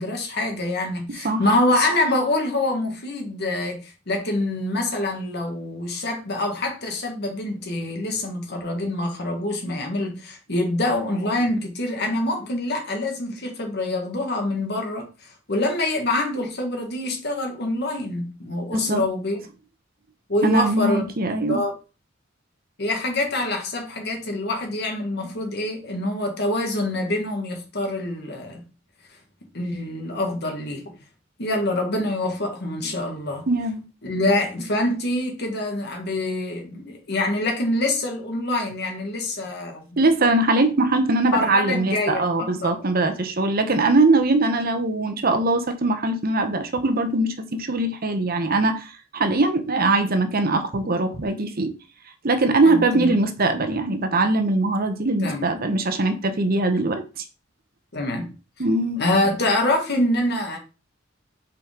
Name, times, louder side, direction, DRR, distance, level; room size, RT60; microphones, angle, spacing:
voice 1, 0.0-19.5 20.3-21.0 21.5-21.7 22.8-28.6 29.5-30.9 31.4-33.5 34.0-39.9 41.3-42.7 52.7-53.1 55.2-55.5 57.9-58.3 59.0-60.6, left 1 dB, 55° left, 1.8 m, -25 dB
voice 2, 18.7-19.0 20.4-21.6 33.5-33.8 40.0-51.7 52.2-57.2 58.6-59.0, right 2 dB, 50° right, 0.9 m, -21 dB
5.7 x 5.0 x 3.8 m
head